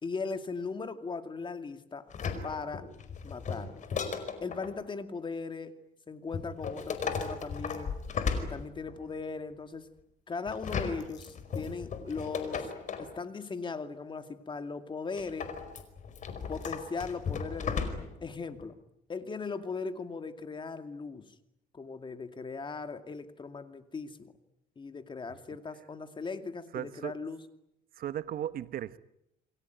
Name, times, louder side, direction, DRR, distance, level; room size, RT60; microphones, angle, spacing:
voice 1, 0.0-2.1 2.4-2.9 3.2-3.8 4.4-5.7 6.1-8.0 8.4-9.9 10.3-12.7 13.0-15.5 16.5-18.7 19.1-21.3 21.7-24.3 24.8-27.4, left 4 dB, 30° left, 2.4 m, -38 dB
sound 1, 2.1-4.7 6.3-9.1 10.5-13.1 15.2-18.3 18.6-18.7, left 5 dB, 45° left, 4.9 m, -36 dB
voice 2, 26.7-27.1 28.0-29.0, right 11 dB, 60° right, 1.1 m, -36 dB
28.5 x 21.5 x 9.3 m
cardioid pair, 110°, 17 cm